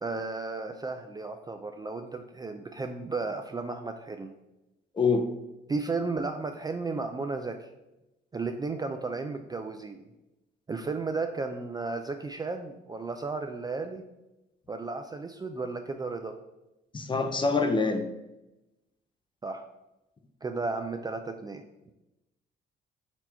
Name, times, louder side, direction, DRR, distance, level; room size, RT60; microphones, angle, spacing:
voice 1, 0.0-4.3 5.7-7.7 8.3-10.0 10.7-14.0 14.7-16.4 19.4-19.6 20.4-21.6, right 3 dB, 20° right, 5 dB, 0.3 m, -34 dB
voice 2, 5.0-5.3 16.9-18.1, left 4 dB, 25° left, 6 dB, 0.6 m, -25 dB
4.3 x 2.8 x 4.3 m, 0.94 s
cardioid pair, 90°, 20 cm